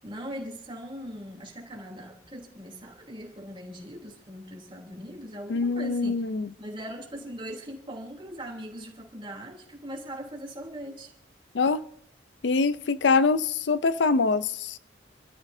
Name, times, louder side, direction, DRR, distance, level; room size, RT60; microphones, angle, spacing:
voice 1, 0.0-6.3 6.6-11.1, equal, 30° right, 3.1 m, -40 dB
voice 2, 5.5-6.5 11.5-11.8 12.4-14.8, left 4 dB, 75° left, 0.5 m, -24 dB
29.0 x 13.0 x 2.7 m
head